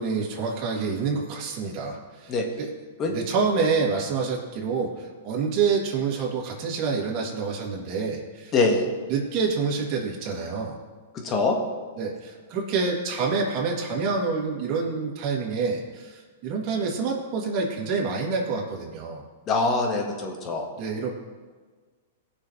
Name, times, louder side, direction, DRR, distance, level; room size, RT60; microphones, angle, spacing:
voice 1, 0.0-2.7 3.1-8.5 9.1-10.8 12.0-19.2 20.8-21.1, right 5 dB, 40° right, -2 dB, 3.0 m, -27 dB
voice 2, 8.5-8.9 11.1-11.6 19.5-20.6, left 3 dB, 30° left, 2 dB, 1.8 m, -23 dB
18.5 x 6.5 x 3.4 m, 1.4 s
hypercardioid pair, 125°, 0 cm